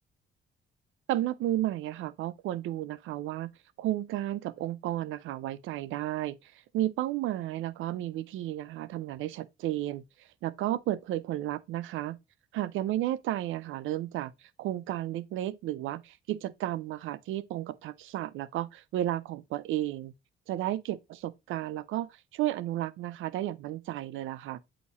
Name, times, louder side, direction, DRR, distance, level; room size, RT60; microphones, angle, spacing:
voice 1, 1.1-3.5 3.8-10.0 10.4-12.2 12.5-20.1 20.5-24.6, right 13 dB, 85° right, 0.5 m, -33 dB
8.3 x 2.9 x 4.0 m
cardioid pair, 90°, 20 cm